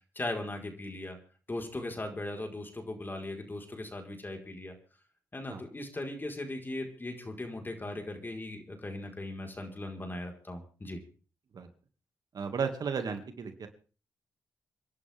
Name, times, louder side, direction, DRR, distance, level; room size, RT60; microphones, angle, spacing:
voice 1, 0.1-1.2 1.5-4.7 5.3-11.0, left 2 dB, 30° left, 3 dB, 4.8 m, -38 dB
voice 2, 12.3-13.7, right 6 dB, 65° right, 7 dB, 2.4 m, -34 dB
28.0 x 11.5 x 3.7 m, 0.37 s
cardioid pair, 60°, 7 cm